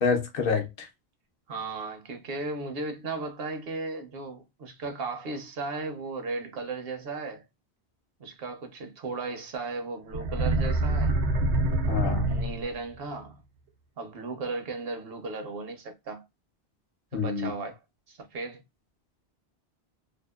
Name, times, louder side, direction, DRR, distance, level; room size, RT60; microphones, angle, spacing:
voice 1, 0.0-0.9 11.9-12.4 17.1-17.5, left 5 dB, 60° left, 0.8 m, -27 dB
voice 2, 1.5-7.4 8.2-11.2 12.2-13.4 14.0-16.2 17.1-17.8 18.1-18.6, right 3 dB, 65° right, 0.9 m, -36 dB
sound 1, 10.1-12.9, right 2 dB, 90° right, 1.0 m, -26 dB
2.8 x 2.3 x 2.2 m
omnidirectional pair, 1.1 m